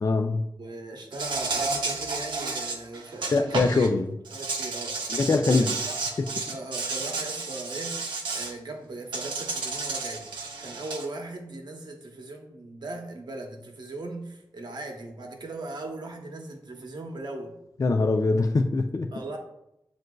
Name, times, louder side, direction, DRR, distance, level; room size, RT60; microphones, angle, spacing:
voice 1, 0.0-0.5 3.3-4.2 5.1-5.8 6.2-6.3 17.8-19.1, left 3 dB, 45° left, 6 dB, 0.3 m, -23 dB
voice 2, 0.6-3.9 4.3-5.0 5.5-5.9 6.5-10.3 10.6-17.6 19.1-19.4, right 2 dB, 70° right, 2 dB, 0.8 m, -39 dB
Insect, 1.1-3.9 4.2-8.5 9.1-11.1, right 3 dB, 90° right, 0.6 m, -32 dB
7.6 x 2.5 x 2.2 m, 0.82 s
cardioid pair, 50°, 8 cm